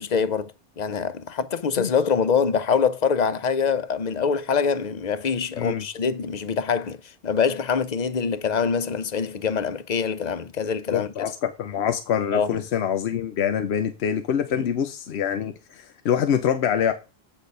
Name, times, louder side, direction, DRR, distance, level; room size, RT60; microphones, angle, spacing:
voice 1, 0.0-7.0 7.2-11.1 12.3-12.6 14.6-14.7, left 6 dB, 50° left, 0.6 m, -24 dB
voice 2, 10.9-16.9, left 8 dB, 85° left, 1.0 m, -25 dB
8.2 x 4.0 x 5.2 m
omnidirectional pair, 1.1 m